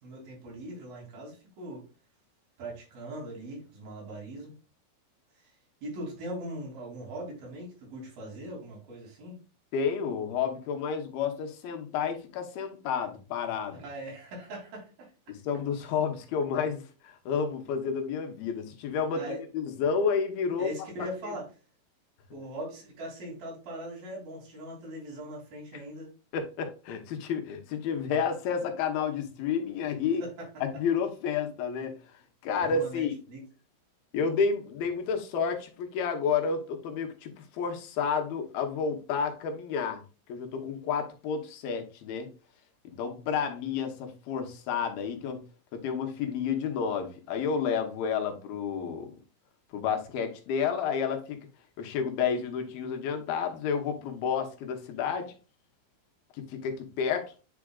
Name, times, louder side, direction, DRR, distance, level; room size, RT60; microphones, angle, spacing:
voice 1, 0.0-1.8 2.6-4.5 5.4-5.5 5.8-9.4 13.7-15.1 19.1-19.4 20.6-21.5 22.3-26.1 30.2-30.5 32.6-33.4, right 1 dB, 80° right, 4.7 m, -40 dB
voice 2, 9.7-13.8 15.3-20.7 26.3-30.2 30.6-32.0 32.4-33.1 34.1-40.0 40.3-42.3 42.8-45.4 45.7-49.1 49.7-51.4 51.8-55.3 56.3-57.3, left 6 dB, 90° left, 2.9 m, -30 dB
9.5 x 4.9 x 2.4 m
omnidirectional pair, 4.1 m